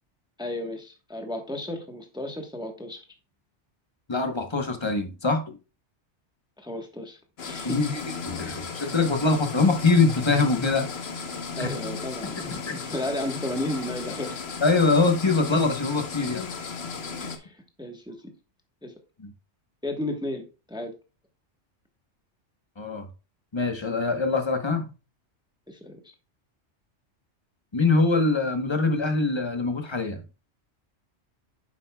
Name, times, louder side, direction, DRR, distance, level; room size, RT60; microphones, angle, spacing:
voice 1, 0.4-3.0 6.6-7.8 11.6-12.5 12.7-14.4 17.2-18.2 18.8-18.9 19.8-20.9 25.7-26.0, left 1 dB, 5° right, 1.0 m, -33 dB
voice 2, 4.1-5.5 7.6-10.9 11.6-11.7 12.4-12.7 14.6-16.5 19.2-19.3 22.8-23.1 23.5-24.9 27.7-30.2, left 3 dB, 25° left, 1.0 m, -23 dB
sound 1, 7.4-17.4, left 5 dB, 60° left, 1.2 m, -35 dB
9.2 x 7.3 x 2.2 m
omnidirectional pair, 1.2 m